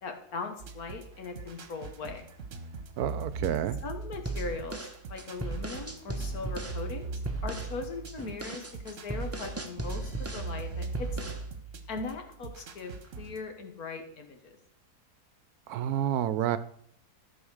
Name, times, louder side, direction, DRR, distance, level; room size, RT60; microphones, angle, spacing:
voice 1, 0.0-2.2 3.8-11.4 11.9-14.6, left 4 dB, 65° left, 6 dB, 1.9 m, -40 dB
sound 1, 0.6-13.4, right 4 dB, 55° right, 1.3 m, -41 dB
voice 2, 3.0-3.8 15.7-16.6, right 10 dB, 75° right, 14 dB, 1.1 m, -29 dB
sound 2, 4.2-6.8 7.2-7.7 8.1-10.5 10.9-11.5, right 2 dB, 15° right, 0.4 m, -36 dB
13.5 x 5.1 x 6.4 m, 0.66 s
omnidirectional pair, 1.7 m